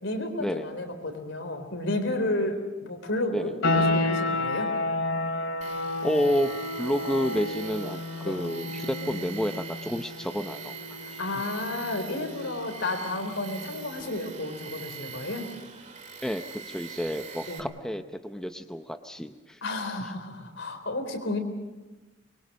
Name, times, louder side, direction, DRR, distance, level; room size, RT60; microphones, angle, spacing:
voice 1, 0.0-4.7 8.2-8.4 11.2-15.5 17.5-17.7 19.6-21.4, left 2 dB, 70° left, 6 dB, 3.8 m, -32 dB
sound 1, 3.6-14.1, left 2 dB, 85° left, 3.5 m, -31 dB
Tools, 5.6-17.6, right 6 dB, 35° right, 2.0 m, -43 dB
voice 2, 6.0-6.5 6.8-10.7 11.1-11.2 16.2-19.6 20.0-20.1, equal, 5° left, 7 dB, 0.6 m, -30 dB
24.5 x 22.0 x 6.3 m, 1.2 s
head